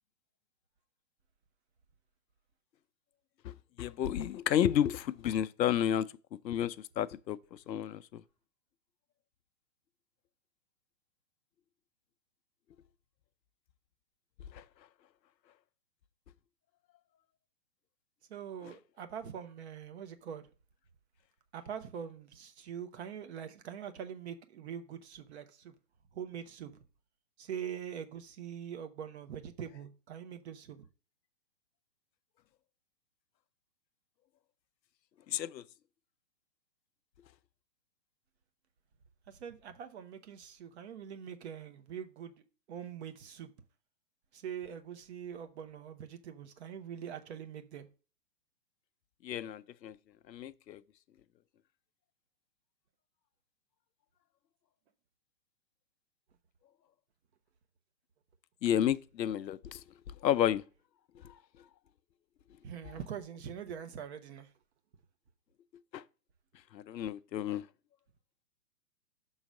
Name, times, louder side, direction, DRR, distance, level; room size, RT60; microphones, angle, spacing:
voice 1, 3.8-6.1 6.4-7.4 7.7-8.2 14.5-14.6 35.3-35.6 49.2-49.9 50.3-50.8 58.6-59.8 60.2-60.6 65.9-66.0 66.7-67.6, left 10 dB, 85° left, 0.6 m, -31 dB
voice 2, 18.3-20.4 21.5-25.7 26.1-26.8 27.4-30.8 39.3-42.3 42.7-43.5 44.3-47.9 62.6-64.5, right 8 dB, 40° right, 0.9 m, -43 dB
6.3 x 4.0 x 5.1 m
hypercardioid pair, 140°, 49 cm